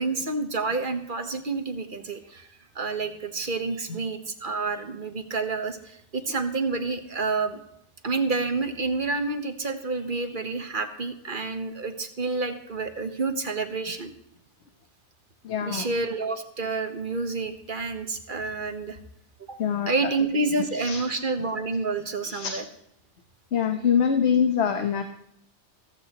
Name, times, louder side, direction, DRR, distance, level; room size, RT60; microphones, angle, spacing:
voice 1, 0.0-2.5 2.7-7.6 8.0-14.1 15.6-19.0 19.5-19.6 19.9-22.6, right 3 dB, 45° right, 7 dB, 1.2 m, -29 dB
voice 2, 15.4-15.9 19.6-19.9 20.7-21.2 22.2-22.6 23.5-25.0, left 7 dB, 70° left, 6 dB, 1.2 m, -24 dB
15.0 x 15.0 x 3.0 m, 0.74 s
omnidirectional pair, 1.2 m